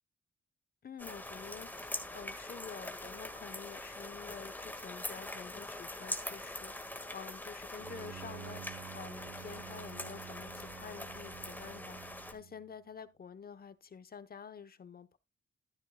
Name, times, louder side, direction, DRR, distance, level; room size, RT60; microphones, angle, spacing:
voice 1, 0.8-15.2, left 6 dB, 45° left, 1.0 m, -49 dB
sound 1, 1.0-12.3, left 1 dB, 10° left, 1.8 m, -43 dB
Bowed string instrument, 7.8-12.7, right 11 dB, 75° right, 0.8 m, -50 dB
13.0 x 9.6 x 2.3 m
cardioid pair, 85°, 21 cm